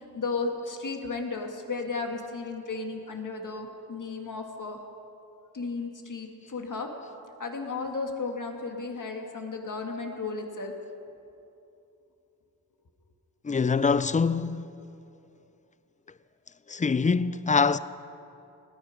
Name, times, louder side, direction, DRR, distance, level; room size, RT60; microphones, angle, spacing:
voice 1, 0.1-4.8 5.5-6.9 7.4-10.7, left 4 dB, 50° left, 1.8 m, -34 dB
voice 2, 13.4-14.7 16.7-17.8, left 5 dB, 20° left, 0.4 m, -24 dB
19.0 x 9.8 x 5.1 m
cardioid pair, 65°, 38 cm